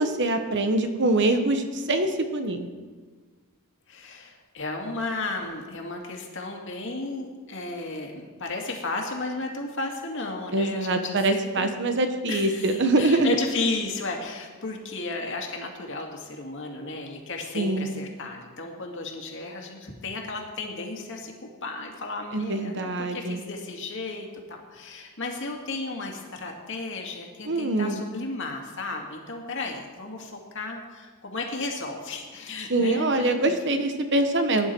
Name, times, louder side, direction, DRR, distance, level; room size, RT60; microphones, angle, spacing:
voice 1, 0.0-2.7 10.5-13.4 17.5-17.9 22.3-23.4 27.4-28.0 32.7-34.7, right 2 dB, 55° right, 7 dB, 1.1 m, -24 dB
voice 2, 3.9-11.0 11.3-11.5 12.3-33.6, left 3 dB, 60° left, 1 dB, 2.2 m, -34 dB
18.5 x 10.0 x 4.6 m, 1.4 s
head